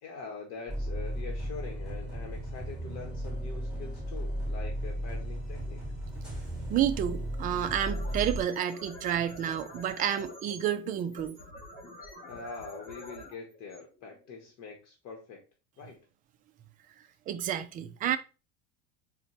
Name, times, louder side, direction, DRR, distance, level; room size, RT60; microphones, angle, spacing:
voice 1, 0.0-5.8 12.3-15.4 15.8-16.0, left 5 dB, 55° left, 1.0 m, -44 dB
sound 1, 0.7-8.4, equal, ahead, 1.8 m, -35 dB
voice 2, 6.7-11.4 17.3-18.2, right 10 dB, 25° right, 0.3 m, -30 dB
sound 2, 7.5-14.5, equal, 25° left, 1.8 m, -47 dB
4.1 x 2.2 x 4.0 m
supercardioid pair, 140°, 32 cm